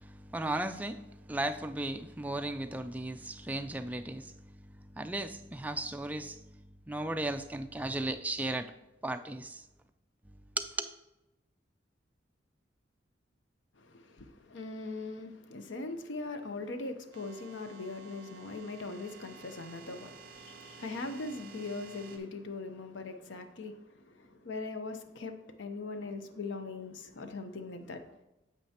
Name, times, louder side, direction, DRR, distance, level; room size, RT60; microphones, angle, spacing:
voice 1, 0.0-8.7 9.0-9.6 10.6-10.9, right 2 dB, 10° right, 7 dB, 0.3 m, -36 dB
voice 2, 13.8-28.1, left 3 dB, 80° left, 8 dB, 0.7 m, -41 dB
sound 1, 17.1-22.2, right 5 dB, 50° right, 1.0 m, -52 dB
8.9 x 7.4 x 2.8 m, 0.97 s
head